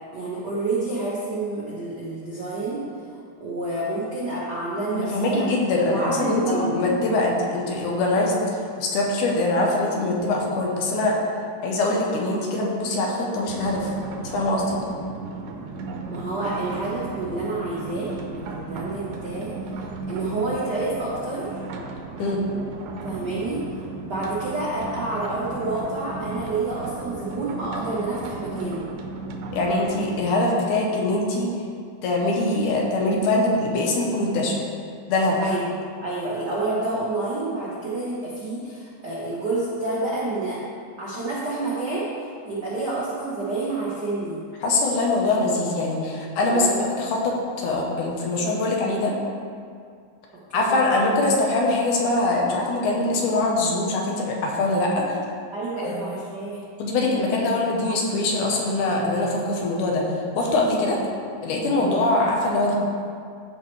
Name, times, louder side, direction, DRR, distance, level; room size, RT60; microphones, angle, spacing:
voice 1, 0.1-2.8 3.1-5.5 5.8-6.8 16.1-21.6 23.0-28.9 35.4-35.7 36.0-40.6 41.0-44.4 46.4-46.8 50.5-50.8 51.1-51.2 55.5-56.6 61.8-61.9, right 2 dB, 60° right, -8 dB, 1.0 m, -29 dB
voice 2, 5.0-8.4 8.8-11.2 11.6-13.9 14.2-14.8 22.2-22.4 29.5-31.5 32.0-34.6 35.1-35.4 44.6-49.1 50.5-55.2 55.8-56.0 56.8-60.1 60.4-61.0 61.4-62.7, left 2 dB, 70° left, -2 dB, 2.4 m, -23 dB
sound 1, 13.5-30.2, right 3 dB, 80° right, 2.3 m, -35 dB
14.5 x 5.3 x 3.3 m, 2.3 s
omnidirectional pair, 3.9 m